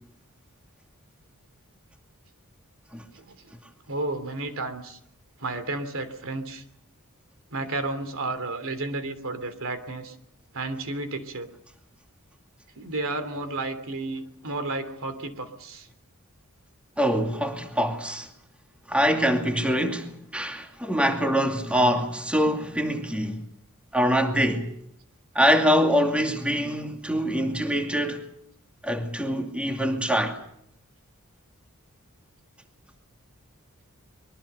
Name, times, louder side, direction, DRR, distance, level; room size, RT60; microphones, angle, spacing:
voice 1, 3.1-3.5 3.9-5.0 5.4-6.6 7.5-10.1 10.5-11.5 12.8-15.9, right 2 dB, 65° right, 3.1 m, -32 dB
voice 2, 17.0-18.3 18.9-23.5 23.9-24.7 25.3-28.2 28.8-30.4, equal, 5° right, 2.5 m, -24 dB
24.0 x 22.5 x 6.9 m
head